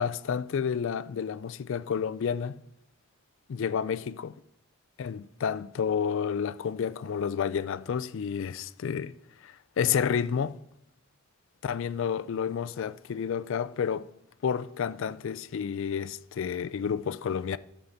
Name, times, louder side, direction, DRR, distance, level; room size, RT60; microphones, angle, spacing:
voice 1, 0.0-2.6 3.5-4.3 5.0-9.1 9.4-10.6 11.6-14.1 14.4-17.6, left 7 dB, 60° left, 0.3 m, -30 dB
11.0 x 4.1 x 7.8 m
head